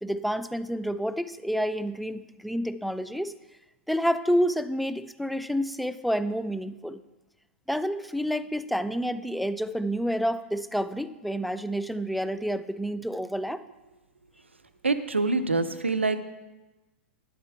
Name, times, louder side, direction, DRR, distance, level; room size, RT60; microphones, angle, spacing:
voice 1, 0.0-3.3 3.9-7.0 7.7-13.6, equal, ahead, 13 dB, 0.3 m, -29 dB
voice 2, 14.8-16.2, right 3 dB, 85° right, 11 dB, 0.7 m, -25 dB
10.0 x 7.3 x 4.6 m, 1.1 s
figure-of-eight pair, 100°, 6 cm